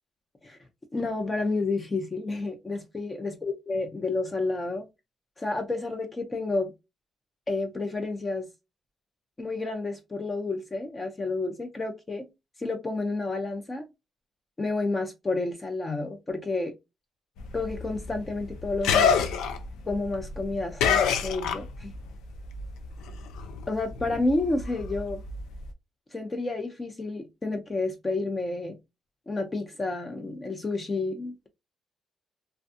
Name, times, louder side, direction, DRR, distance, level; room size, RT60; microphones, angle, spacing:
voice 1, 0.9-4.9 5.4-6.7 7.5-8.5 9.4-12.3 12.6-13.9 14.6-16.7 17.5-19.2 19.9-21.9 23.7-25.2 26.1-28.7 29.3-31.5, left 3 dB, 25° left, 0.6 m, -30 dB
sound 1, 17.4-22.1 22.4-25.7, left 6 dB, 90° left, 0.4 m, -27 dB
2.6 x 2.2 x 2.5 m
cardioid pair, 90°, 0 cm